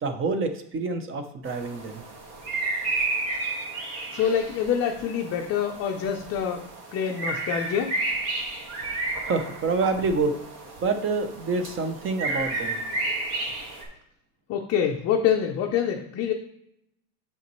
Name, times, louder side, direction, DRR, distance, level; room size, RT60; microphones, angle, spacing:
voice 1, 0.0-2.0 9.2-10.3 10.8-12.8, right 4 dB, 25° right, 7 dB, 0.7 m, -27 dB
sound 1, 1.4-13.8, right 2 dB, 50° right, 1.9 m, -32 dB
voice 2, 4.1-6.6 6.9-7.9 14.5-16.3, left 8 dB, 30° left, 1 dB, 0.5 m, -26 dB
8.2 x 5.6 x 3.0 m, 0.78 s
cardioid pair, 140°, 50 cm